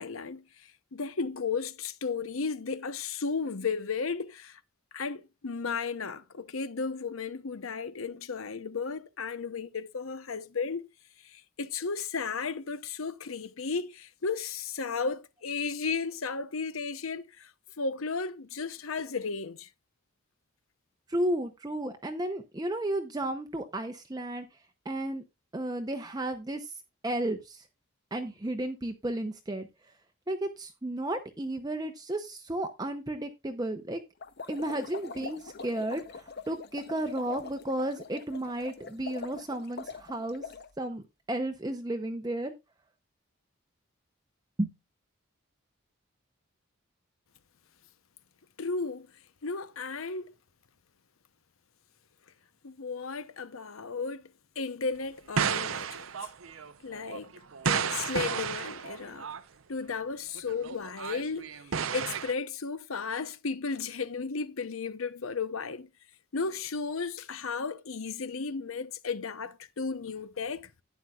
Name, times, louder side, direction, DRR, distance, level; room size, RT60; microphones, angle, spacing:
voice 1, 0.0-4.6 4.9-10.9 11.2-19.7 48.6-49.1 49.4-50.3 52.6-54.2 54.6-56.1 56.8-57.3 57.6-59.3 59.7-61.5 61.9-65.9 66.3-70.7, left 4 dB, 80° left, 0.8 m, -34 dB
voice 2, 21.1-24.5 24.9-25.2 25.5-26.7 27.0-27.6 28.1-29.7 30.3-34.0 34.5-40.4 40.8-42.5 44.6-44.7, right 1 dB, 20° right, 0.7 m, -33 dB
sound 1, 34.2-40.7, left 4 dB, 50° left, 0.7 m, -43 dB
sound 2, 55.4-59.4 60.4-62.3, right 7 dB, 75° right, 0.7 m, -32 dB
11.5 x 9.3 x 2.4 m
head